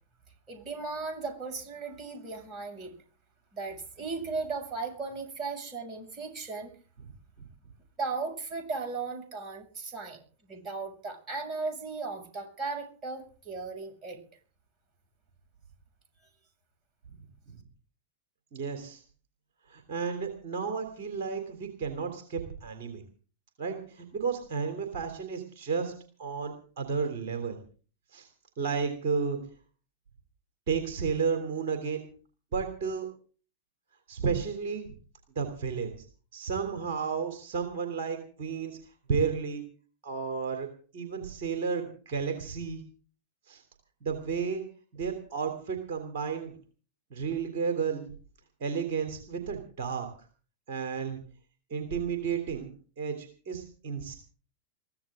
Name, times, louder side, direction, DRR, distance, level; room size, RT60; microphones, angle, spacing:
voice 1, 0.5-2.9 3.5-6.7 8.0-14.2, right 4 dB, 30° right, 4 dB, 7.2 m, -36 dB
voice 2, 18.5-19.0 19.7-23.0 23.6-25.9 26.2-27.6 28.1-28.3 28.6-29.4 30.7-32.0 32.5-33.1 34.1-34.9 35.3-36.0 36.3-38.8 39.1-39.6 40.0-40.7 40.9-42.8 43.4-43.6 44.0-44.6 44.9-46.6 47.1-48.1 48.6-50.3 50.7-51.2 51.7-54.2, right 6 dB, 55° right, 5 dB, 3.4 m, -32 dB
23.0 x 16.0 x 3.8 m, 0.42 s
figure-of-eight pair, 90°, 0 cm